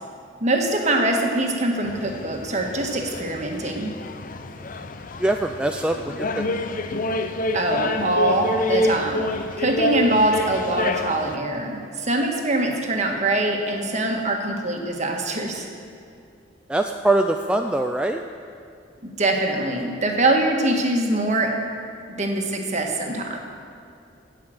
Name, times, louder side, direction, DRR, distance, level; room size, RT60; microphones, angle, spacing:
voice 1, 0.4-3.9 7.5-15.7 19.0-21.6 22.1-23.4, right 2 dB, 40° right, 2 dB, 1.5 m, -23 dB
sound 1, 1.8-11.4, left 2 dB, 45° left, 0.6 m, -27 dB
voice 2, 5.2-6.6 16.7-18.2, right 2 dB, 5° right, 4 dB, 0.3 m, -23 dB
16.5 x 5.8 x 7.7 m, 2.5 s
head